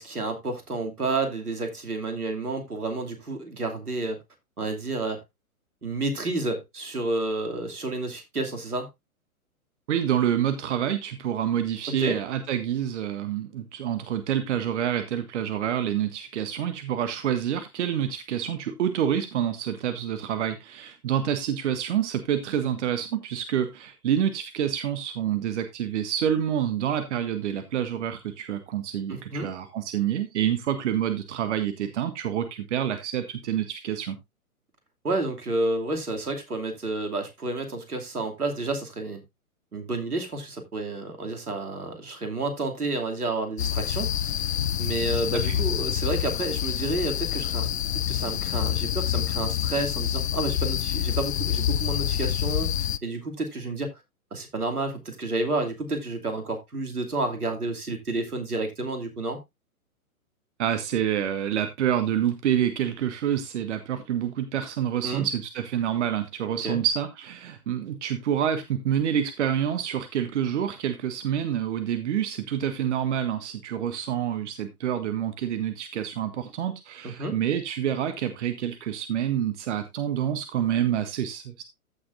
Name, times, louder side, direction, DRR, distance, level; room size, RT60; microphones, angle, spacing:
voice 1, 0.0-4.2 4.6-5.2 5.8-8.9 12.0-12.2 29.1-29.5 35.0-39.2 39.7-47.7 48.1-53.9 54.3-59.4 65.0-65.3 66.6-66.8 77.0-77.4, right 2 dB, 85° right, 2.8 m, -30 dB
voice 2, 9.9-34.2 45.4-45.6 60.6-81.6, right 9 dB, 50° right, 1.2 m, -27 dB
sound 1, 43.6-53.0, left 10 dB, 50° left, 0.5 m, -27 dB
14.5 x 6.3 x 2.6 m
figure-of-eight pair, 120°, 44 cm